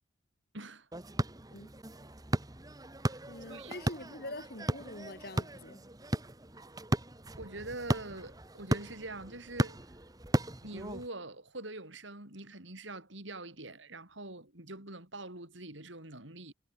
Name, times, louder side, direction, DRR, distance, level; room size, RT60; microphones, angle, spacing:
voice 1, 0.5-0.9 3.0-3.2 3.5-3.8 7.4-9.9 10.6-16.5, right 2 dB, 75° right, 5.6 m, -44 dB
sound 1, 0.9-11.1, right 1 dB, 20° right, 1.5 m, -36 dB
voice 2, 3.3-5.8, left 1 dB, 50° left, 4.9 m, -45 dB
head